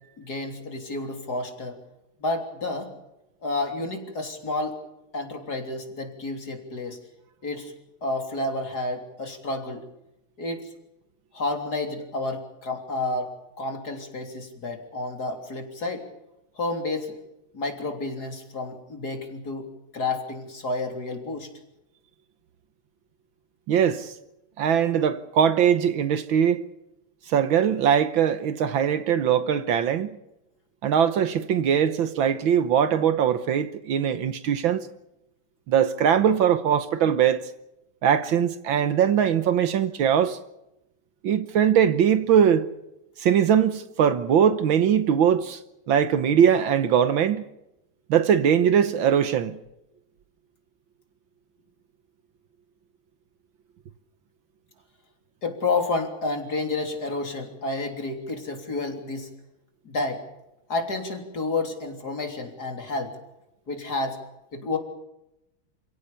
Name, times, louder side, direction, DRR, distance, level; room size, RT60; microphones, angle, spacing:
voice 1, 0.2-1.8 2.2-2.9 3.4-4.8 5.1-7.0 7.4-7.7 8.0-9.8 10.4-10.7 11.3-16.1 16.6-17.2 17.5-19.7 19.9-21.5 55.4-59.3 59.9-60.2 60.7-63.1 63.7-64.2 64.5-64.8, left 2 dB, 45° left, 3.8 m, -30 dB
voice 2, 23.7-24.1 24.6-26.6 27.3-30.1 30.8-34.9 35.7-37.5 38.0-40.4 41.2-42.7 43.2-45.6 45.9-47.4 48.1-49.6, right 8 dB, 70° right, 1.7 m, -21 dB
28.5 x 17.0 x 7.0 m
omnidirectional pair, 2.4 m